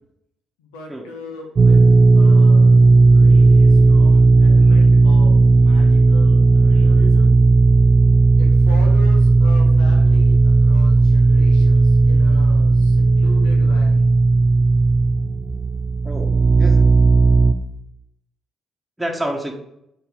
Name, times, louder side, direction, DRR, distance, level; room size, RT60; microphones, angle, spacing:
voice 1, 0.6-1.8 2.1-2.7 3.1-7.3 8.4-14.0, left 2 dB, 85° left, 2 dB, 1.2 m, -38 dB
sound 1, 1.5-17.5, right 3 dB, 50° right, 0.5 m, -13 dB
voice 2, 16.0-17.0 19.0-19.5, right 1 dB, 10° right, 0 dB, 1.5 m, -28 dB
4.6 x 4.4 x 5.1 m, 0.79 s
hypercardioid pair, 50°, 0 cm